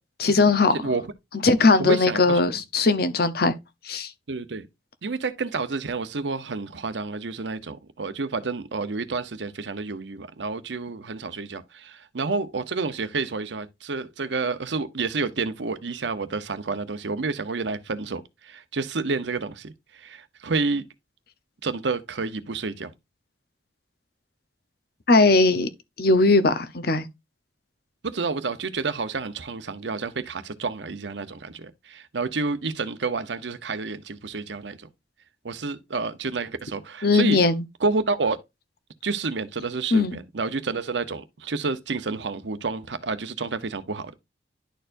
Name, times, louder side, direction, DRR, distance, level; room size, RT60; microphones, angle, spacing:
voice 1, 0.2-0.8 1.4-3.5 3.8-4.1 25.1-25.7 26.0-27.1 37.0-37.6 39.9-40.2, left 3 dB, 60° left, 0.8 m, -19 dB
voice 2, 0.7-1.0 1.8-2.4 4.3-4.7 5.0-20.8 21.6-22.9 28.0-34.9 35.4-37.4 37.8-38.4 39.0-44.1, right 4 dB, 80° right, 0.8 m, -29 dB
11.0 x 4.4 x 2.6 m
head